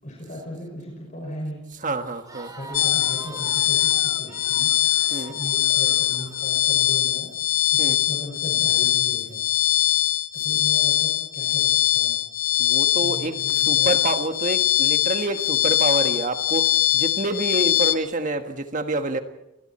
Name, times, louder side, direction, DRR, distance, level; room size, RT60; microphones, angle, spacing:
voice 1, 0.0-1.6 2.5-9.4 10.3-12.2 13.0-13.9, equal, 40° left, 5.9 m, -37 dB
voice 2, 1.8-2.5 5.1-5.3 7.8-8.0 12.6-13.3 13.6-19.2, right 2 dB, 40° right, 1.5 m, -27 dB
Crowd, 2.0-7.0, right 2 dB, 20° right, 3.2 m, -43 dB
sound 1, 2.7-18.0, left 13 dB, 90° left, 0.9 m, -22 dB
30.0 x 21.0 x 4.4 m
head